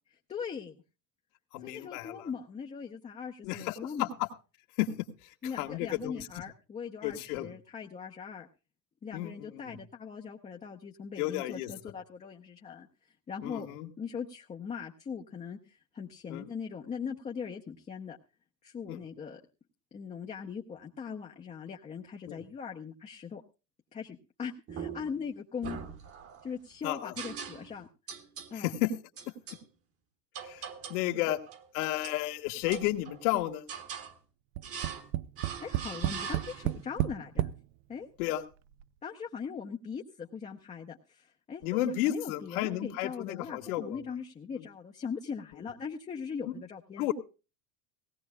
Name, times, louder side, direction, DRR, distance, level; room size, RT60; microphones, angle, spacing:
voice 1, 0.3-0.8 1.6-4.1 5.4-8.5 9.0-13.7 14.0-18.2 18.6-19.4 19.9-23.4 23.9-25.8 26.4-27.9 28.5-28.7 31.1-31.3 35.6-37.5 37.9-38.1 39.0-47.1, left 6 dB, 15° left, 0 dB, 0.7 m, -40 dB
voice 2, 1.5-2.3 3.4-4.1 4.8-4.9 5.6-6.3 7.0-7.5 9.1-9.8 11.2-11.7 13.4-13.9 16.3-16.5 18.9-19.0 22.3-22.4 26.8-27.1 28.5-28.9 30.4-31.4 31.7-33.6 38.2-38.4 41.6-44.1 47.0-47.1, left 14 dB, 70° left, 5 dB, 1.8 m, -32 dB
sound 1, 24.7-25.2 25.6-26.5 27.2-27.8 28.1-28.5 29.2-29.6 30.3-31.1 31.5-32.2 32.7-33.3 33.7-34.1 34.6-35.1 35.4-36.8, right 7 dB, 30° right, 1.3 m, -42 dB
Tap, 34.6-37.6 38.4-38.5 38.8-38.9, right 14 dB, 60° right, 0.6 m, -31 dB
18.0 x 17.5 x 2.2 m, 0.32 s
supercardioid pair, 150°, 46 cm